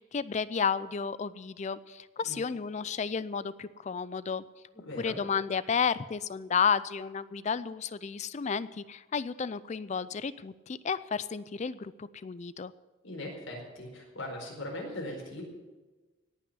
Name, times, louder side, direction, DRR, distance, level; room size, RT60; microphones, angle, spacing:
voice 1, 0.0-4.4 5.0-12.7, left 6 dB, 35° left, 17 dB, 0.4 m, -32 dB
voice 2, 4.7-5.2 13.0-15.4, left 1 dB, 75° left, -1 dB, 4.6 m, -40 dB
17.5 x 6.1 x 9.8 m, 1.2 s
head